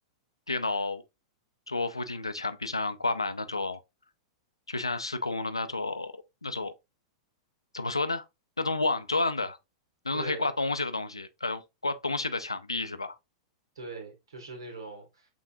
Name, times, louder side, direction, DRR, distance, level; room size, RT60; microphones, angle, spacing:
voice 1, 0.5-1.0 1.7-3.8 4.7-6.1 6.4-6.7 7.7-8.2 8.6-9.6 10.0-13.2, left 3 dB, 85° left, 0.5 m, -30 dB
voice 2, 10.1-10.5 13.8-15.3, right 3 dB, 70° right, 2.0 m, -41 dB
6.0 x 3.5 x 2.5 m
figure-of-eight pair, 95°, 3 cm